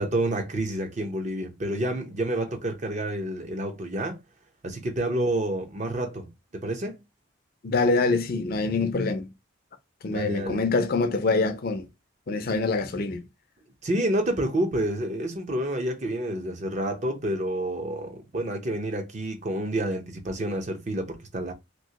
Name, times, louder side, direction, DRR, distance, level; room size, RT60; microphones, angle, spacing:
voice 1, 0.0-4.2 4.6-7.0 10.1-10.6 13.8-21.5, right 1 dB, 35° right, 0.6 m, -29 dB
voice 2, 7.6-9.3 10.0-11.9 12.3-13.2, left 3 dB, 45° left, 0.5 m, -25 dB
3.0 x 2.8 x 2.8 m
head